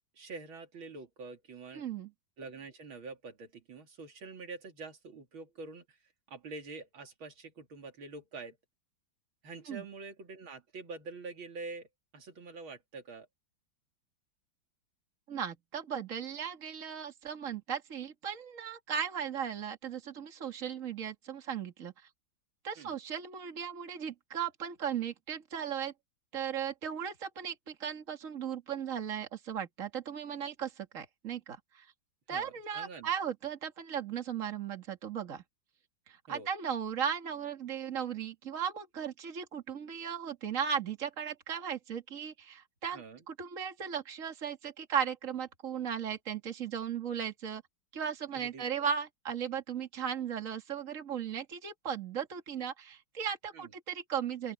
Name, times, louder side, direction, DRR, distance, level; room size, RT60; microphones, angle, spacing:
voice 1, 0.1-1.8 2.4-6.0 6.3-8.6 9.4-11.9 12.1-13.3 22.8-22.9 32.3-33.1 36.3-36.5 42.9-43.2 48.3-48.9 53.5-53.7, right 3 dB, 85° right, 3.3 m, -46 dB
voice 2, 1.7-2.1 9.7-9.9 15.3-21.9 22.6-25.9 26.3-31.9 32.3-35.4 36.1-47.6 47.9-54.5, right 8 dB, 40° right, 2.3 m, -36 dB
open air
omnidirectional pair, 2.2 m